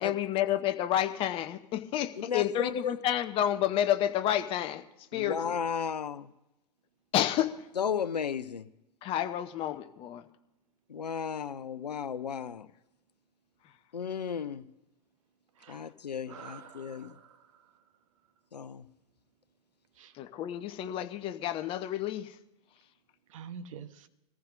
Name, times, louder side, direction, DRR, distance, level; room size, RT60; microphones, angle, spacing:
voice 1, 0.0-4.8 5.1-5.6 7.1-7.6 9.0-10.2 20.2-22.3, left 11 dB, 25° left, 0.7 m, -30 dB
voice 2, 2.2-3.0 5.1-6.3 7.8-8.7 10.9-12.7 13.9-14.6 15.7-17.1 18.5-18.8, left 7 dB, 75° left, 0.6 m, -34 dB
voice 3, 15.5-15.9 16.3-17.8 19.9-20.2 23.3-24.1, right 7 dB, 50° right, 1.0 m, -48 dB
20.5 x 14.5 x 2.5 m
figure-of-eight pair, 105°, 21 cm